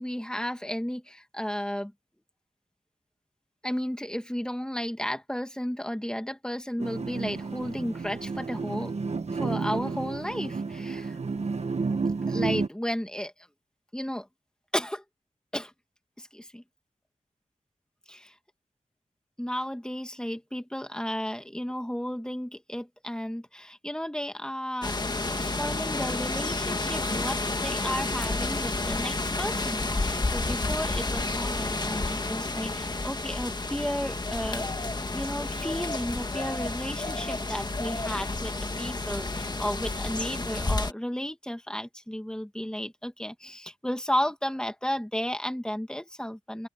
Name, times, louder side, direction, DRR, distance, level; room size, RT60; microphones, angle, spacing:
voice 1, 0.0-1.9 3.6-8.9 9.4-11.2 12.3-13.3 13.9-14.3 14.7-15.0 15.5-15.7 16.2-16.6 18.1-18.3 19.4-24.9 25.3-34.7 35.1-46.7, equal, 5° left, 2.4 m, -33 dB
sound 1, 6.8-12.7, right 4 dB, 60° right, 1.5 m, -31 dB
sound 2, 24.8-40.9, left 2 dB, 35° left, 1.8 m, -30 dB
open air
wide cardioid pair, 80°, 13 cm